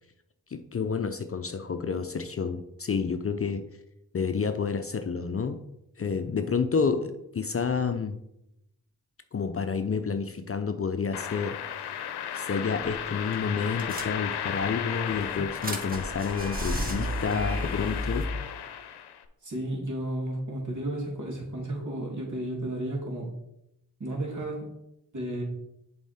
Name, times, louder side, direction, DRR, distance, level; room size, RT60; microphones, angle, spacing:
voice 1, 0.5-3.7 4.1-5.6 6.0-8.2 9.3-18.3, left 5 dB, 35° left, 8 dB, 0.6 m, -30 dB
sound 1, 11.1-19.2, left 9 dB, 75° left, 0.7 m, -35 dB
sound 2, 13.0-13.1 13.3-13.4 13.8-14.6 15.1-18.2, equal, 20° right, 1.4 m, -33 dB
voice 2, 19.4-23.3 24.0-24.7 25.1-25.4, right 1 dB, 45° right, -1 dB, 2.8 m, -33 dB
7.2 x 4.1 x 4.3 m, 0.84 s
supercardioid pair, 45°, 40 cm